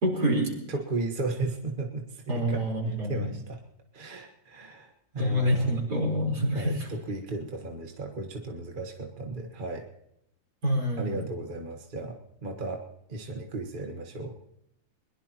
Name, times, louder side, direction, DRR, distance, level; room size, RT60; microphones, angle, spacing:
voice 1, 0.0-0.5 2.3-3.3 5.2-6.9 10.6-11.2, equal, 55° right, -1 dB, 5.0 m, -26 dB
voice 2, 0.7-3.6 3.9-5.8 6.5-9.9 11.0-12.8 13.1-14.4, right 2 dB, 30° right, 2 dB, 1.5 m, -35 dB
22.0 x 21.5 x 3.0 m, 0.80 s
omnidirectional pair, 2.0 m